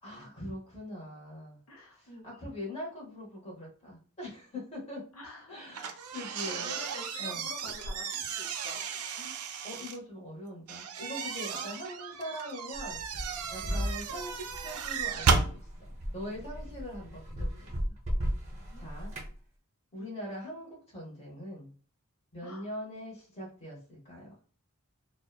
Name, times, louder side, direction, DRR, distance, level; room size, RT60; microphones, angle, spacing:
voice 1, 0.0-1.6 1.9-5.0 5.5-6.7 7.2-7.4 9.6-15.7 16.1-17.6 18.8-19.1 19.9-21.7 22.3-24.3, equal, 30° left, -3 dB, 0.9 m, -42 dB
voice 2, 1.7-2.5 5.1-5.6 6.1-8.8 9.2-9.3 11.5-11.7 13.6-13.8 18.5-18.9 22.4-22.7, left 2 dB, 70° left, 0 dB, 0.6 m, -48 dB
sound 1, 5.7-10.0 10.7-15.5, right 5 dB, 85° right, 0.4 m, -34 dB
sound 2, 12.7-19.3, equal, 30° right, 0.5 m, -36 dB
2.7 x 2.1 x 2.3 m, 0.41 s
head